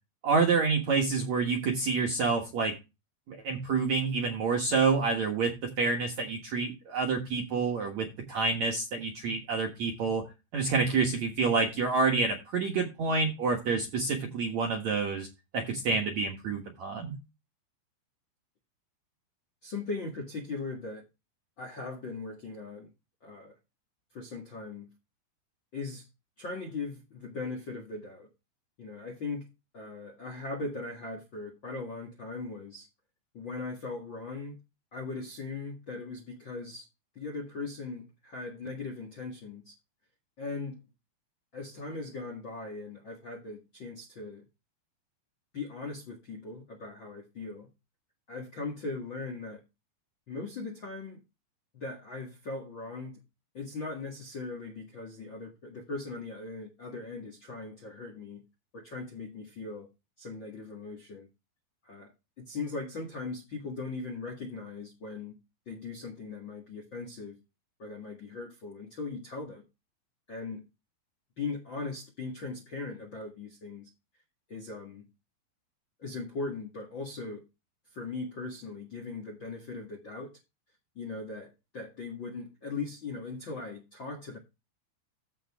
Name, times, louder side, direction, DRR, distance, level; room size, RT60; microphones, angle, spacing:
voice 1, 0.2-2.7 3.3-10.3 10.5-15.3 15.5-17.2, right 4 dB, 60° right, 1.9 m, -28 dB
voice 2, 19.6-21.0 21.6-22.9 23.2-23.6 24.1-24.9 25.7-26.1 26.4-28.3 28.8-29.5 29.7-32.9 33.3-34.6 34.9-36.9 37.1-39.7 40.4-40.8 41.5-44.4 45.5-47.7 48.3-49.6 50.3-51.2 51.7-53.2 53.5-58.4 58.7-59.9 60.2-61.3 61.8-65.3 65.6-67.4 67.8-69.6 70.3-70.6 71.4-73.9 74.5-75.0 76.0-77.4 77.9-80.3 80.9-84.4, left 3 dB, 50° left, 1.4 m, -39 dB
14.5 x 5.3 x 3.6 m
omnidirectional pair, 5.2 m